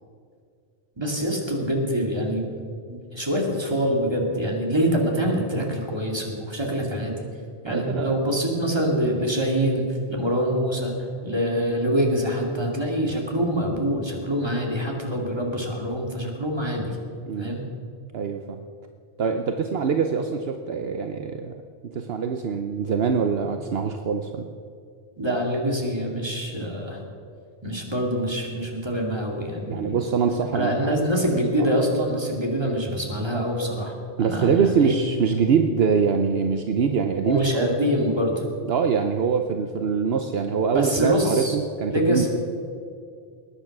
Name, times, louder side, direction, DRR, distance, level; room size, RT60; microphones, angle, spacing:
voice 1, 1.0-7.2 7.6-17.0 17.4-17.6 25.2-27.0 27.6-30.0 30.5-34.9 37.2-38.4 40.7-41.6 41.9-42.3, equal, 25° right, 0 dB, 2.4 m, -25 dB
voice 2, 7.7-8.2 17.3-17.5 18.1-18.6 19.2-21.5 21.9-24.5 29.7-31.1 34.2-37.7 38.7-42.3, right 6 dB, 65° right, 6 dB, 1.0 m, -24 dB
20.0 x 9.8 x 6.0 m, 2.3 s
omnidirectional pair, 1.1 m